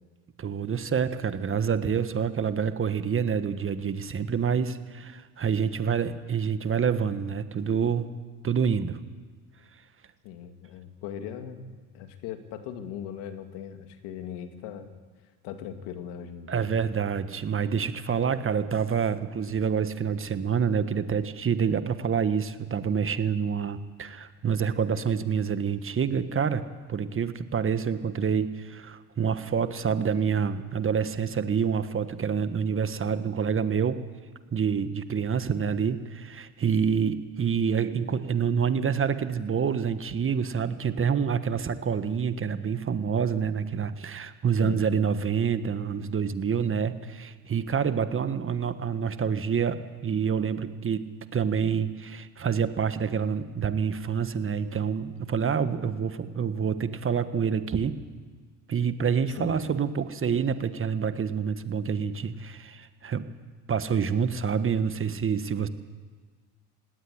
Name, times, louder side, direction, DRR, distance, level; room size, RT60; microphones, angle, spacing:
voice 1, 0.4-8.1 8.4-9.0 16.5-34.0 34.5-58.0 58.7-63.3 63.7-65.7, right 7 dB, 30° right, 11 dB, 1.4 m, -27 dB
voice 2, 10.2-14.9 15.4-16.8 44.6-44.8 59.4-59.6, left 9 dB, 70° left, 7 dB, 2.3 m, -39 dB
18.0 x 16.5 x 9.8 m, 1.5 s
supercardioid pair, 85°, 41 cm